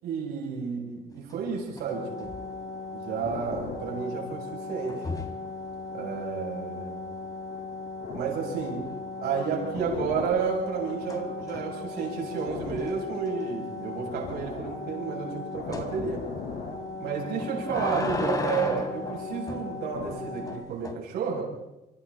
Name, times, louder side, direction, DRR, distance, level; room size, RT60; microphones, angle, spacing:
voice 1, 0.0-2.3 2.9-5.0 5.9-7.0 8.1-8.9 9.2-16.3 17.0-21.5, right 5 dB, 75° right, -1 dB, 7.7 m, -31 dB
sound 1, 1.3-1.9 2.2-2.6 4.9-5.4 8.5-9.0 9.5-11.9 12.3-12.4 12.8-12.9 13.3-13.4 15.7-15.9 17.2-19.7 20.5-20.9, left 2 dB, 20° left, 3.3 m, -35 dB
sound 2, 1.9-20.6, left 4 dB, 65° left, 7.3 m, -37 dB
29.0 x 24.5 x 4.3 m, 0.95 s
cardioid pair, 110°, 17 cm